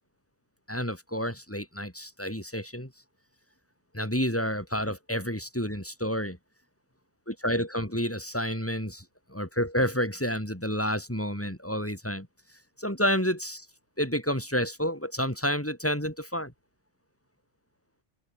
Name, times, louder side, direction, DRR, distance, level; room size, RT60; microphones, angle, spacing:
voice 1, 0.7-2.9 3.9-6.4 7.3-9.0 9.3-12.3 12.8-13.7 14.0-16.5, equal, 10° left, 3.4 m, -29 dB
open air
omnidirectional pair, 1.3 m